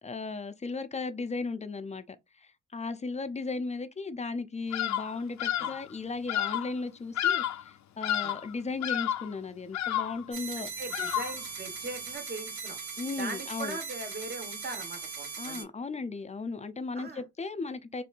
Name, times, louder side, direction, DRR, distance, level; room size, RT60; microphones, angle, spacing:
voice 1, 0.0-10.7 13.0-13.8 15.4-18.0, left 4 dB, 20° left, 0.6 m, -36 dB
Bird vocalization bird call bird song, 4.7-5.1 5.4-5.8 6.3-6.7 7.2-7.7 8.0-8.5 8.8-9.3 9.7-10.2 10.9-11.4, left 11 dB, 65° left, 0.6 m, -30 dB
sound 1, 10.3-15.6, right 5 dB, 70° right, 1.9 m, -39 dB
voice 2, 10.6-12.8 13.2-15.7 16.9-17.2, right 3 dB, 35° right, 1.4 m, -40 dB
4.5 x 2.7 x 2.5 m
cardioid pair, 90°, 30 cm